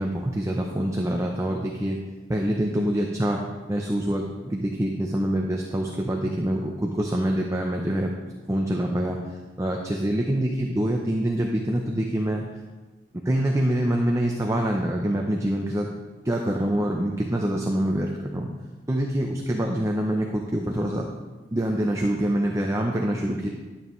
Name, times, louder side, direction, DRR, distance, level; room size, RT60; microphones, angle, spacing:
voice 1, 0.0-2.0 2.3-3.4 3.7-8.1 8.5-9.2 9.6-12.5 13.2-15.9 16.2-18.5 18.9-21.1 21.5-23.5, right 1 dB, 15° right, 0 dB, 0.6 m, -25 dB
11.0 x 7.1 x 3.2 m, 1.2 s
head